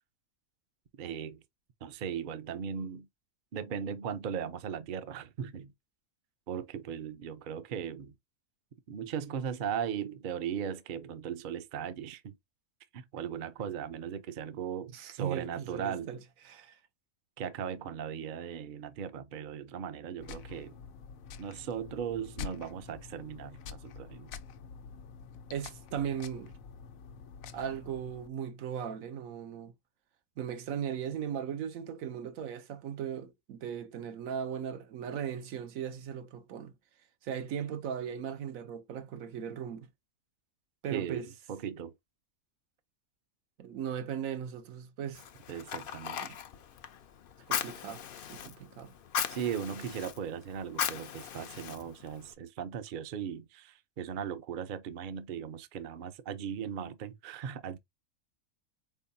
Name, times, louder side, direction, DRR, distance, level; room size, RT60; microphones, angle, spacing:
voice 1, 1.0-1.4 1.8-3.1 3.5-5.7 6.5-8.1 8.9-12.4 12.9-16.1 17.4-20.7 21.4-24.3 40.9-41.9 45.5-46.2 49.3-57.8, right 8 dB, 55° right, 0.6 m, -38 dB
voice 2, 14.9-16.2 16.4-16.8 25.5-26.5 27.5-29.7 30.4-36.7 37.2-39.9 40.8-41.3 43.6-45.2 46.2-46.4 47.5-48.0 48.3-48.9, right 8 dB, 80° right, 1.1 m, -38 dB
sound 1, 20.2-28.3, left 6 dB, 85° left, 1.0 m, -47 dB
Fire, 45.1-52.3, left 8 dB, 60° left, 0.6 m, -38 dB
4.5 x 3.6 x 2.6 m
omnidirectional pair, 1.4 m